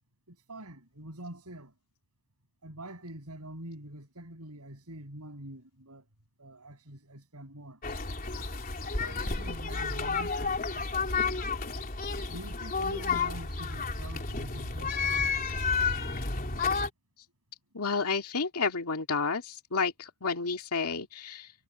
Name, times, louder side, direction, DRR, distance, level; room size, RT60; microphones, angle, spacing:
voice 1, 0.3-1.7 2.6-6.1 6.4-7.8 8.8-11.2 12.3-16.1, right 1 dB, 90° right, 7.2 m, -46 dB
sound 1, 7.8-16.9, left 4 dB, 40° left, 3.4 m, -31 dB
voice 2, 17.7-21.5, left 4 dB, 85° left, 2.2 m, -31 dB
head